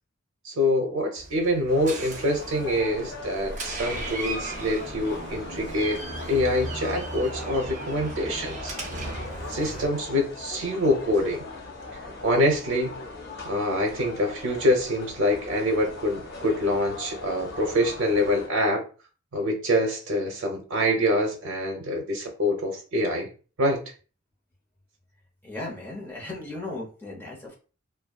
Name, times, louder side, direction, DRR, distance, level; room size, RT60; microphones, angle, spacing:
voice 1, 0.4-6.0 6.3-8.8 9.5-11.4 12.2-12.9 13.5-18.8 19.3-23.3 23.6-23.8, left 1 dB, 85° right, 2 dB, 0.6 m, -25 dB
Door, 1.2-9.9, right 2 dB, 35° right, 0.5 m, -36 dB
sound 1, 1.7-18.5, left 3 dB, 55° left, 0.6 m, -40 dB
voice 2, 25.4-27.6, left 2 dB, 10° left, -3 dB, 0.7 m, -36 dB
2.6 x 2.2 x 2.2 m, 0.37 s
head